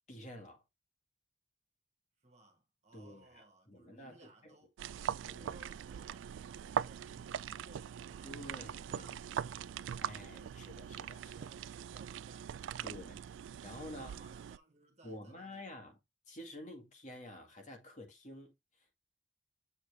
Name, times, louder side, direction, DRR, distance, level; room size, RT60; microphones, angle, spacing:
voice 1, 0.1-0.6 2.9-4.5 5.3-5.6 8.2-9.1 10.0-11.5 12.8-13.2 13.6-14.1 15.0-16.0 16.3-19.0, left 1 dB, 40° left, 2.1 m, -50 dB
voice 2, 2.2-4.7 5.4-9.7 10.3-10.5 11.4-13.0 13.6-15.7, right 2 dB, 35° right, 1.8 m, -62 dB
sound 1, 4.8-14.6, right 8 dB, 85° right, 0.3 m, -41 dB
7.5 x 4.0 x 3.5 m
head